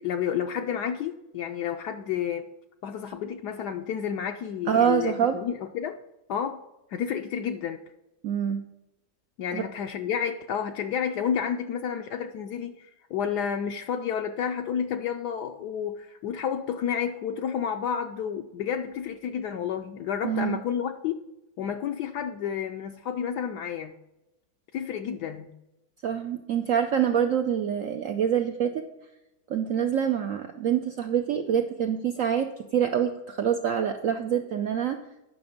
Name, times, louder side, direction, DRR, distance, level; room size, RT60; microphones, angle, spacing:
voice 1, 0.0-2.5 2.8-6.0 6.3-6.6 6.9-7.8 9.4-21.2 21.6-24.0 24.7-25.5, left 8 dB, 70° left, 5 dB, 1.0 m, -30 dB
voice 2, 4.7-5.4 8.2-8.6 9.5-9.6 20.2-20.6 26.0-28.8 29.5-35.0, right 8 dB, 80° right, 6 dB, 0.7 m, -26 dB
9.5 x 6.0 x 5.1 m, 0.91 s
omnidirectional pair, 2.0 m